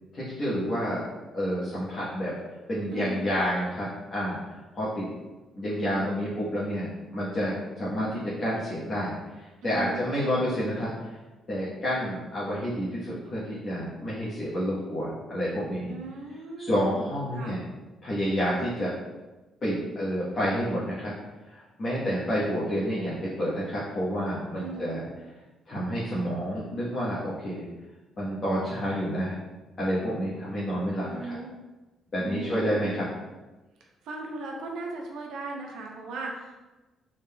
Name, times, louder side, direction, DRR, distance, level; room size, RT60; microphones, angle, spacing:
voice 1, 0.1-1.0 1.3-2.3 2.7-4.4 4.7-5.1 5.5-6.9 7.1-10.9 11.5-15.9 16.6-17.6 18.0-18.9 19.6-21.1 21.5-25.1 25.7-27.6 28.2-29.4 29.8-31.3 32.1-33.0, equal, 40° left, -9 dB, 1.0 m, -29 dB
voice 2, 2.9-3.3 9.6-10.1 15.9-17.6 24.6-25.0 31.1-31.5 32.2-33.1 34.0-36.6, right 3 dB, 80° right, 0 dB, 0.6 m, -38 dB
3.8 x 3.4 x 2.2 m, 1.1 s
cardioid pair, 105°, 0 cm